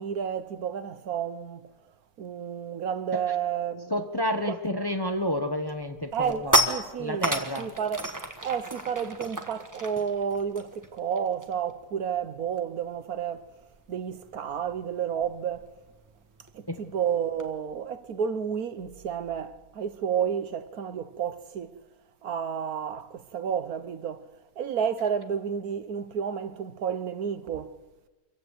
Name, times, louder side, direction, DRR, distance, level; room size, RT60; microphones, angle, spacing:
voice 1, 0.0-1.7 2.2-3.9 4.5-4.6 6.1-8.1 8.4-13.5 13.9-15.7 16.5-21.7 22.2-24.3 24.6-27.7, right 7 dB, 65° right, 1.4 m, -31 dB
voice 2, 3.9-6.6 7.0-7.7 16.7-16.8, equal, 15° left, 1.0 m, -30 dB
sound 1, 5.1-5.4 5.8-11.7 12.0-12.2 12.5-17.5, right 1 dB, 10° right, 1.4 m, -32 dB
25.5 x 15.0 x 8.2 m
omnidirectional pair, 1.7 m